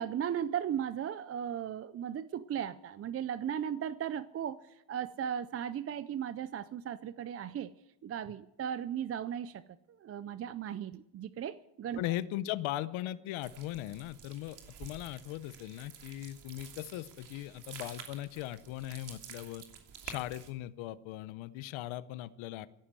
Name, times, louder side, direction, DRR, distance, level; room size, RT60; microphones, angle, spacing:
voice 1, 0.0-7.7 8.0-9.6 10.0-12.0, right 9 dB, 30° right, 15 dB, 0.4 m, -36 dB
voice 2, 12.0-19.6 20.0-22.7, left 14 dB, 80° left, 16 dB, 0.9 m, -39 dB
sound 1, 13.4-20.5, right 7 dB, 60° right, 2.9 m, -50 dB
15.0 x 11.5 x 7.5 m, 0.87 s
cardioid pair, 125°, 47 cm